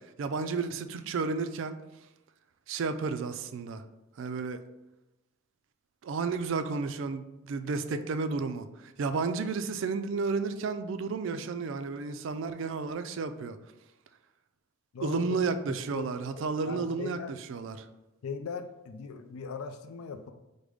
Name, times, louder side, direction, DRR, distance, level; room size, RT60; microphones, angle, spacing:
voice 1, 0.2-1.8 2.7-3.8 4.2-4.6 6.0-13.6 15.0-17.9, right 4 dB, 60° right, 0.3 m, -32 dB
voice 2, 14.9-15.4 15.7-16.0 16.4-17.3 18.2-20.3, left 5 dB, 80° left, 0.4 m, -39 dB
5.0 x 2.1 x 4.8 m
head